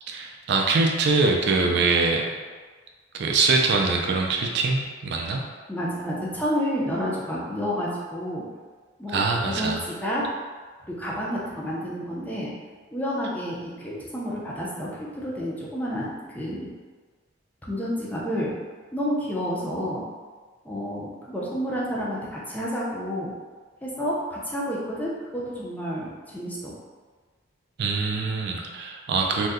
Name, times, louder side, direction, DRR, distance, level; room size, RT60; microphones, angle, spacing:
voice 1, 0.1-2.3 3.1-5.4 9.1-9.8 27.8-29.5, right 3 dB, 60° right, 1 dB, 0.3 m, -23 dB
voice 2, 5.7-8.4 9.0-10.2 10.9-12.5 12.9-16.7 17.7-18.5 18.9-20.0 20.6-23.3 23.8-26.7, equal, 10° left, -6 dB, 0.5 m, -30 dB
2.6 x 2.1 x 3.5 m, 1.4 s
head